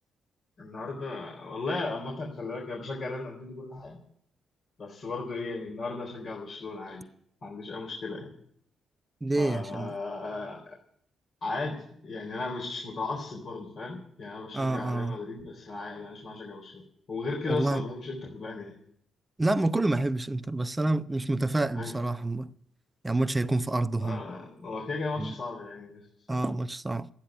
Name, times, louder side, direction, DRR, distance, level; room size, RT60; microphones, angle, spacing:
voice 1, 0.6-4.0 4.8-7.0 7.4-8.3 9.3-10.6 11.4-16.8 17.1-18.7 21.7-21.9 24.0-26.0 26.3-26.4, left 3 dB, 50° left, 3.9 m, -36 dB
voice 2, 9.2-9.9 14.5-15.2 17.5-17.8 19.4-22.5 23.0-24.2 25.2-25.3 26.3-27.1, right 2 dB, 20° right, 0.7 m, -28 dB
13.0 x 10.0 x 9.2 m
figure-of-eight pair, 40°, 0 cm